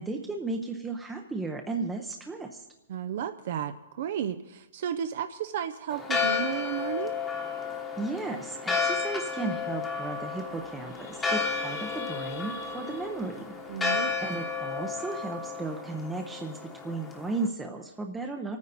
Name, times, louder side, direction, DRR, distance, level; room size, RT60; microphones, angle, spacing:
voice 1, 0.0-2.7 8.0-13.5 14.2-16.6 16.8-18.6, right 3 dB, 10° right, 3 dB, 0.6 m, -35 dB
voice 2, 2.9-7.1 13.7-14.1, right 9 dB, 55° right, 10 dB, 0.5 m, -33 dB
Church bell, 5.9-17.5, left 4 dB, 10° left, 1.1 m, -32 dB
sound 1, 9.6-9.7 9.9-10.1 10.5-14.8, left 6 dB, 55° left, 1.5 m, -46 dB
26.5 x 9.5 x 4.1 m, 0.97 s
hypercardioid pair, 160°, 0 cm